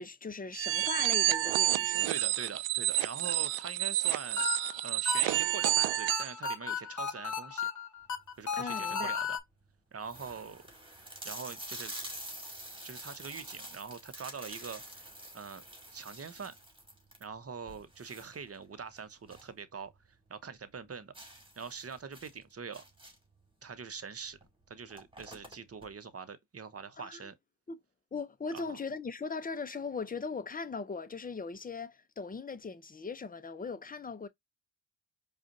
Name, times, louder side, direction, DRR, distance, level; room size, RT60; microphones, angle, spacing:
voice 1, 0.0-2.1 8.5-9.1 27.0-27.3 27.7-27.8 28.1-34.3, left 4 dB, 15° left, 0.7 m, -39 dB
sound 1, 0.5-6.3, right 15 dB, 65° right, 0.5 m, -29 dB
voice 2, 2.1-4.4 4.8-7.7 8.4-9.4 9.9-10.6 11.2-11.9 12.8-15.1 15.3-15.6 15.9-16.5 17.2-19.9 20.3-21.1 21.6-22.8 23.6-24.4 24.7-27.3 28.5-28.8, right 6 dB, 30° right, 0.9 m, -43 dB
sound 2, 4.0-9.4, left 6 dB, 35° left, 1.2 m, -35 dB
sound 3, 8.2-8.7 9.3-9.4 9.6-9.7 10.0-19.6 19.9-20.0 20.4-20.5 21.1-23.4 24.3-24.5 24.7-25.9, right 1 dB, 10° right, 1.9 m, -47 dB
4.9 x 2.5 x 2.6 m
supercardioid pair, 60°, 49 cm